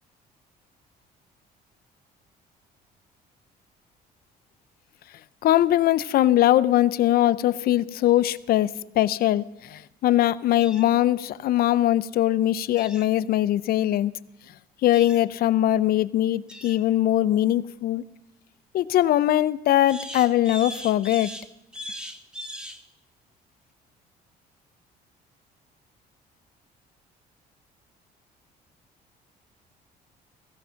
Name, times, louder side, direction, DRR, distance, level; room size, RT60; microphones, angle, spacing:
voice 1, 5.4-14.1 14.8-18.0 18.7-21.3, left 13 dB, 60° left, 0.6 m, -21 dB
sound 1, 10.6-10.9 12.8-13.1 14.9-15.3 16.5-16.8 19.9-22.8, equal, 5° right, 1.3 m, -39 dB
16.5 x 15.5 x 5.7 m
cardioid pair, 110°, 17 cm